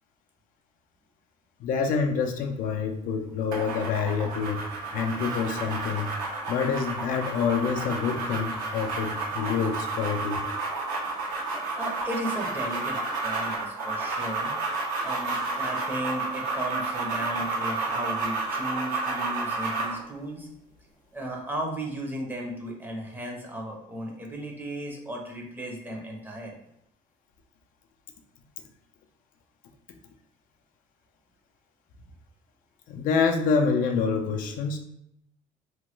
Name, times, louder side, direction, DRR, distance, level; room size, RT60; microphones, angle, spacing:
voice 1, 1.6-4.6 4.9-6.1 6.5-10.4 32.9-34.8, left 5 dB, 65° left, 4 dB, 0.4 m, -27 dB
sound 1, 3.5-20.0, right 3 dB, 70° right, 1.0 m, -31 dB
voice 2, 11.8-14.5 15.0-20.5 21.1-26.6, right 1 dB, 15° right, -1 dB, 0.6 m, -35 dB
3.0 x 2.2 x 3.1 m, 0.76 s
cardioid pair, 145°, 15 cm